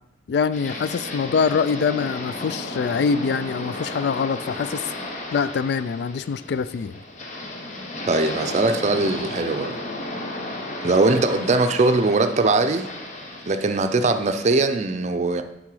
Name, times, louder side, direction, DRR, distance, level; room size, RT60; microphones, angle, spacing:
voice 1, 0.3-4.9 5.3-6.9, left 5 dB, 65° left, 14 dB, 0.3 m, -24 dB
sound 1, 0.5-14.7, left 1 dB, 45° left, 1.0 m, -34 dB
voice 2, 8.1-9.8 10.8-12.9 13.5-15.4, right 3 dB, 40° right, 8 dB, 0.5 m, -21 dB
9.7 x 3.7 x 4.8 m, 0.89 s
head